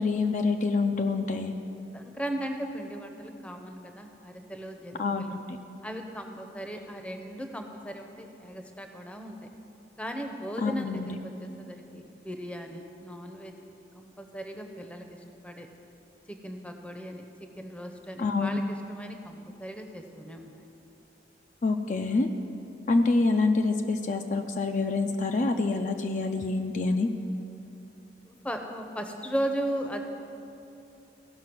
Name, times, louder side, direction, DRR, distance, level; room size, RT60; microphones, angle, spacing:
voice 1, 0.0-1.5 5.0-5.6 10.6-11.2 18.2-18.6 21.6-22.3 22.9-27.1, left 3 dB, 45° left, 5 dB, 0.4 m, -26 dB
voice 2, 1.9-5.4 5.8-9.4 10.0-13.5 13.9-15.7 16.3-20.6 28.3-30.0, right 1 dB, 5° left, 4 dB, 0.6 m, -37 dB
16.0 x 5.6 x 6.0 m, 2.9 s
head